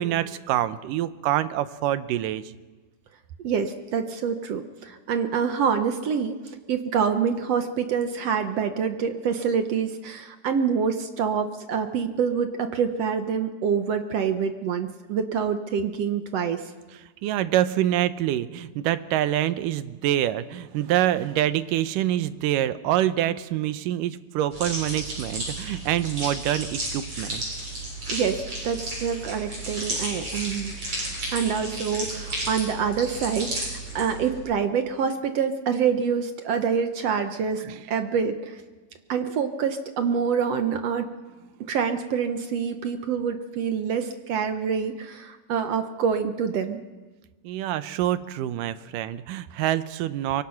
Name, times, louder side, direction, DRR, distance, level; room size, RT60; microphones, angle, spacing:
voice 1, 0.0-2.4 17.2-27.4 37.7-37.8 47.4-50.4, right 12 dB, 85° right, 13 dB, 2.4 m, -26 dB
voice 2, 3.4-6.4 6.7-16.6 28.1-30.8 31.3-38.6 39.1-41.1 41.7-46.8, right 6 dB, 65° right, 7 dB, 1.8 m, -26 dB
sound 1, 24.5-34.4, right 2 dB, 45° right, 8.3 m, -33 dB
24.0 x 23.5 x 5.9 m, 1.3 s
omnidirectional pair, 3.7 m